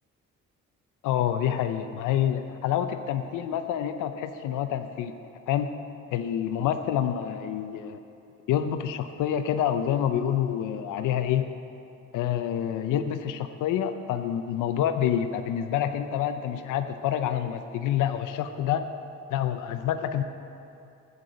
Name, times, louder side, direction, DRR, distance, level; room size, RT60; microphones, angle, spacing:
voice 1, 1.0-5.1 5.5-5.7 6.1-8.0 8.5-11.5 12.1-18.9 19.3-20.2, left 10 dB, 90° left, 8 dB, 0.6 m, -27 dB
9.3 x 8.2 x 7.8 m, 2.6 s
cardioid pair, 90°, 30 cm